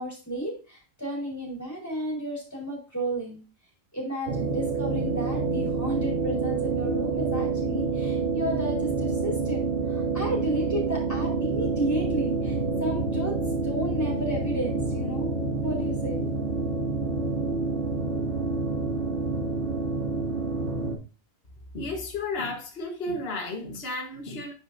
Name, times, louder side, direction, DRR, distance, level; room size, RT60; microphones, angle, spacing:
voice 1, 0.0-3.4 3.9-13.4 13.6-16.3, right 1 dB, 10° left, 4.1 m, -32 dB
sound 1, 4.3-21.0, right 4 dB, 60° right, 2.8 m, -28 dB
voice 2, 21.7-24.5, left 2 dB, 50° left, 1.6 m, -33 dB
9.4 x 5.7 x 2.6 m
omnidirectional pair, 1.3 m